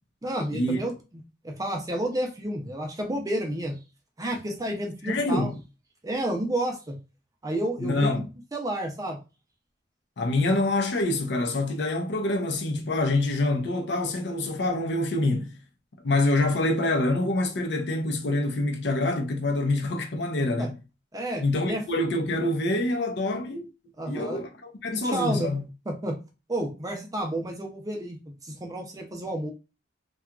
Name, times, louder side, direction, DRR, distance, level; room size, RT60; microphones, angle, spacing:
voice 1, 0.2-0.9 1.4-3.8 4.2-5.5 6.0-7.0 7.4-9.2 20.6-20.7 21.1-21.8 24.0-24.4 24.9-25.5 25.9-26.1 26.5-28.2 28.4-29.5, right 1 dB, 20° right, 0.5 m, -30 dB
voice 2, 5.1-5.6 7.8-8.2 10.2-15.5 16.0-20.7 21.4-23.7 24.1-25.6, left 2 dB, 60° left, 0.5 m, -26 dB
2.8 x 2.3 x 2.3 m
head